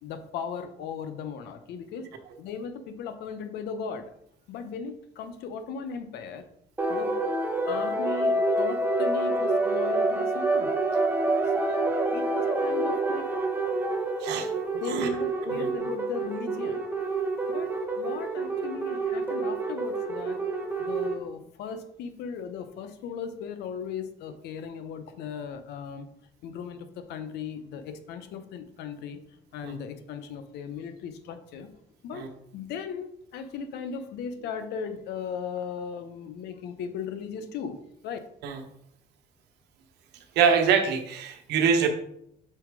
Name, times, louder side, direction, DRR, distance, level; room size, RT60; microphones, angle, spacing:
voice 1, 0.0-2.1 2.4-4.1 4.5-6.5 6.9-7.2 7.6-10.7 11.6-13.3 14.7-16.8 17.5-20.4 20.8-26.1 26.4-29.2 29.5-31.7 32.0-38.2, left 6 dB, 80° left, 9 dB, 0.8 m, -37 dB
sound 1, 6.8-21.2, right 2 dB, 10° right, 1.0 m, -27 dB
voice 2, 40.3-41.9, right 6 dB, 85° right, 5 dB, 1.0 m, -24 dB
5.6 x 4.1 x 4.7 m, 0.72 s
cardioid pair, 110°, 17 cm